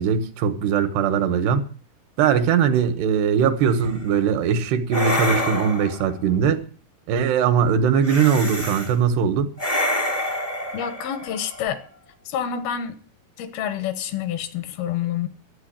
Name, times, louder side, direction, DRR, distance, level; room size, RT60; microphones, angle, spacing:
voice 1, 0.0-1.7 2.2-6.6 7.1-9.5, right 7 dB, 90° right, 3.3 m, -20 dB
sound 1, 3.7-4.0 4.9-6.1 8.0-8.9 9.6-11.8, left 1 dB, 30° left, 0.6 m, -27 dB
voice 2, 10.7-11.8 12.3-13.0 13.4-15.3, left 9 dB, 75° left, 3.0 m, -28 dB
12.0 x 8.4 x 8.7 m
omnidirectional pair, 4.6 m